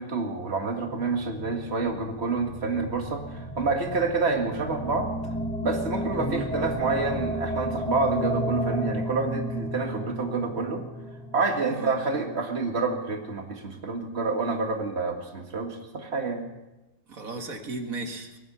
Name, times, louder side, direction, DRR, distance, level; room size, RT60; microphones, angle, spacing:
voice 1, 0.0-5.1 5.6-10.8 11.3-16.4, right 3 dB, 45° right, 3 dB, 2.1 m, -28 dB
sound 1, 0.9-13.1, equal, 5° left, 1.3 m, -33 dB
voice 2, 6.1-6.5 11.7-11.9 17.1-18.4, right 3 dB, 70° right, 4 dB, 2.2 m, -34 dB
22.0 x 9.2 x 7.0 m, 1.0 s
omnidirectional pair, 1.5 m